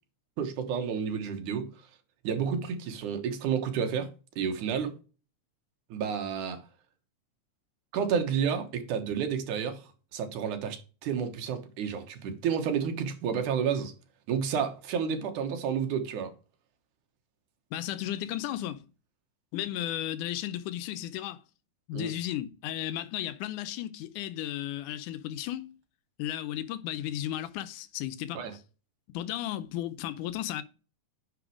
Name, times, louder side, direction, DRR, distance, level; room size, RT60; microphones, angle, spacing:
voice 1, 0.4-1.7 2.2-4.1 4.4-4.9 5.9-6.6 7.9-9.8 10.1-13.9 14.3-16.3 21.9-22.1 28.3-28.5, right 7 dB, 75° right, 2.7 m, -30 dB
voice 2, 17.7-18.9 19.5-21.4 21.9-25.8 26.2-28.6 29.1-30.6, left 12 dB, 80° left, 2.1 m, -34 dB
9.9 x 4.2 x 4.9 m
omnidirectional pair, 3.7 m